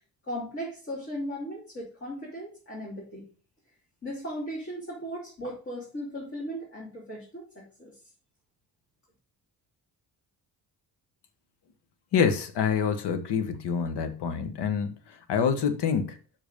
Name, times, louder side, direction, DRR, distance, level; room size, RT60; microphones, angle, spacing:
voice 1, 0.2-3.2 4.0-8.0, equal, 35° left, -5 dB, 2.7 m, -37 dB
voice 2, 12.1-14.9 15.3-16.2, left 6 dB, 80° left, 9 dB, 1.1 m, -26 dB
5.9 x 5.2 x 5.1 m, 0.40 s
wide cardioid pair, 160°, 40 cm